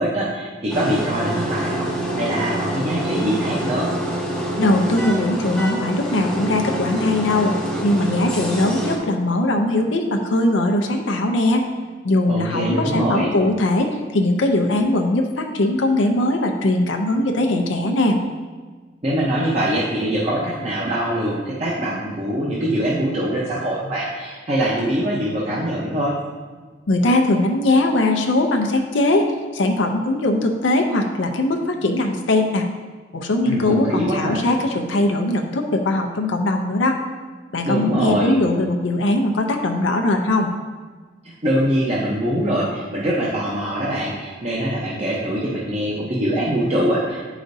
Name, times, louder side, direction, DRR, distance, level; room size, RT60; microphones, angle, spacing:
voice 1, 0.0-3.9 12.3-13.3 19.0-26.2 33.4-34.4 37.6-38.4 41.4-47.2, right 1 dB, 35° right, -6 dB, 0.8 m, -23 dB
sound 1, 0.7-9.0, right 1 dB, 5° left, 0.8 m, -26 dB
voice 2, 4.6-7.5 7.8-11.7 12.0-18.2 26.9-32.6 33.1-37.0 37.5-40.5, left 2 dB, 85° left, 3 dB, 0.6 m, -20 dB
8.9 x 5.0 x 2.7 m, 1.4 s
head